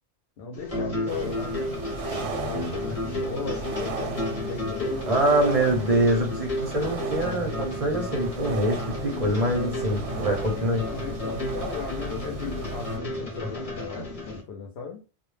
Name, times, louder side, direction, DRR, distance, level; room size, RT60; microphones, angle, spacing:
voice 1, 0.4-1.7 2.2-5.3 10.7-15.0, left 5 dB, 70° left, 0.8 m, -37 dB
sound 1, 0.5-14.4, left 1 dB, 35° left, 0.8 m, -33 dB
sound 2, 1.1-13.0, right 4 dB, 90° right, 0.9 m, -36 dB
voice 2, 5.1-10.8, right 1 dB, 45° right, 0.5 m, -24 dB
2.1 x 2.0 x 3.1 m
omnidirectional pair, 1.1 m